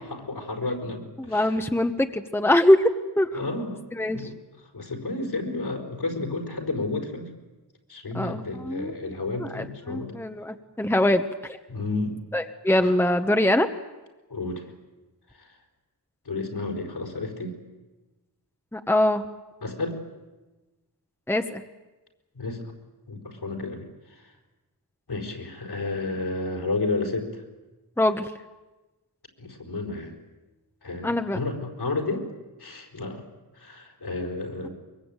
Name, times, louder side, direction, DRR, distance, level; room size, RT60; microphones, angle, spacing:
voice 1, 0.0-1.5 3.3-3.8 4.1-4.4 4.7-7.3 7.9-10.1 11.7-12.2 12.8-13.0 14.3-14.7 15.4-15.5 16.2-17.5 19.6-20.0 22.3-22.7 23.1-23.9 24.2-24.3 25.1-27.4 29.4-30.2 30.8-32.3 32.6-33.2 33.5-34.7, left 3 dB, 70° left, 2 dB, 4.7 m, -31 dB
voice 2, 1.2-2.9 3.2-3.3 3.9-4.3 8.1-9.1 9.4-11.2 12.3-13.7 18.7-19.2 21.3-21.6 28.0-28.3 31.0-31.4, left 1 dB, 5° left, 7 dB, 1.1 m, -23 dB
23.0 x 23.0 x 9.0 m, 1.1 s
wide cardioid pair, 85°, 39 cm